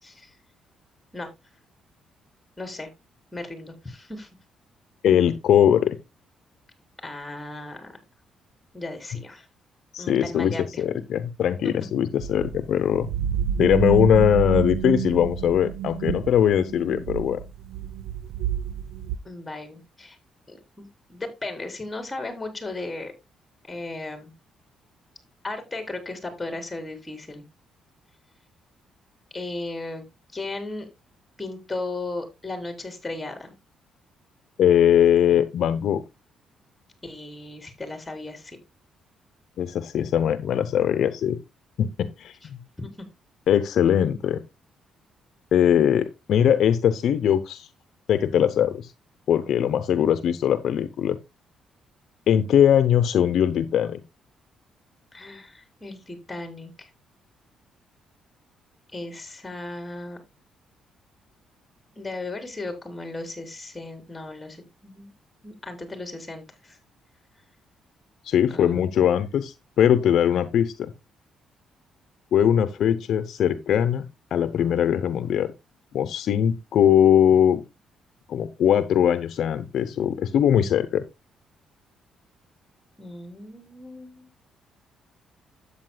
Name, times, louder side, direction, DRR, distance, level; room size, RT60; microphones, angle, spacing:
voice 1, 0.0-0.3 1.1-1.3 2.6-2.9 3.3-4.3 7.0-7.9 8.7-9.5 10.0-10.8 19.2-20.2 20.5-23.1 23.7-24.3 25.4-27.4 29.3-30.0 30.3-30.9 31.4-33.5 37.0-38.6 42.8-42.9 55.1-56.9 58.9-60.2 62.0-65.1 65.4-66.8 68.5-69.1 83.0-84.3, left 2 dB, 15° left, 6 dB, 4.0 m, -36 dB
voice 2, 5.0-6.0 9.9-13.1 13.6-17.4 34.6-36.0 39.6-41.4 41.8-42.6 43.5-44.4 45.5-47.7 48.1-48.9 49.3-51.2 52.3-54.0 68.2-70.9 72.3-74.0 74.3-75.5 75.9-77.6 78.3-81.0, left 9 dB, 70° left, 11 dB, 0.8 m, -21 dB
sound 1, 12.2-19.2, right 10 dB, 90° right, 0.6 m, -29 dB
13.0 x 8.6 x 2.3 m, 0.22 s
cardioid pair, 90°, 0 cm